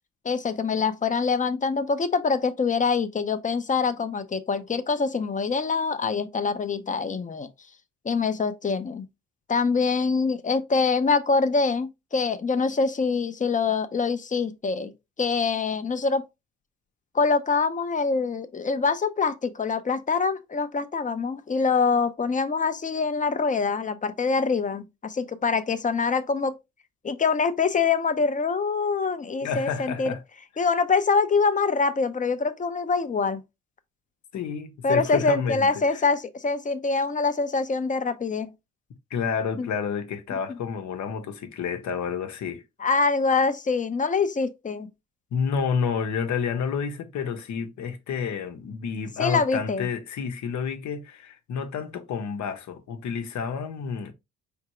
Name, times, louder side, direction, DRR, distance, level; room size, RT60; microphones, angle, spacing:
voice 1, 0.2-7.5 8.0-9.1 9.5-14.9 15.2-16.2 17.1-26.5 27.0-30.1 30.6-33.4 34.8-38.5 39.6-39.7 42.8-44.9 49.2-49.9, left 4 dB, 25° left, 0.7 m, -24 dB
voice 2, 29.4-30.2 34.3-36.0 39.1-42.6 45.3-54.1, left 6 dB, 65° left, 1.0 m, -30 dB
4.7 x 3.6 x 3.0 m
cardioid pair, 90°, 30 cm